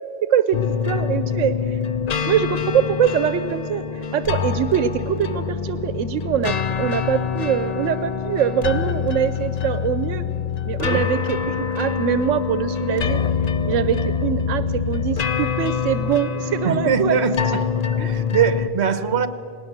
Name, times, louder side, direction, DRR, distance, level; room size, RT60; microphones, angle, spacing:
voice 1, 0.2-0.6 0.9-1.8 2.3-10.2 10.6-13.2 13.7-17.2, right 9 dB, 85° right, 13 dB, 1.0 m, -23 dB
sound 1, 0.5-18.7, left 7 dB, 45° left, 0.5 m, -25 dB
voice 2, 16.6-17.4 18.0-19.3, right 8 dB, 65° right, 12 dB, 1.2 m, -22 dB
19.0 x 18.5 x 7.3 m, 2.7 s
omnidirectional pair, 1.3 m